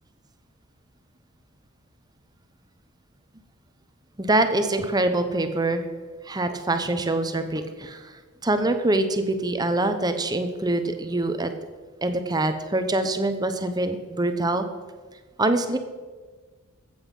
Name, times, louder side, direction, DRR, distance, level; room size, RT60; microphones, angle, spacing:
voice 1, 4.2-5.9 6.2-11.5 12.0-14.6 15.4-15.8, right 2 dB, 20° right, 8 dB, 0.8 m, -24 dB
14.5 x 7.9 x 5.5 m, 1.4 s
head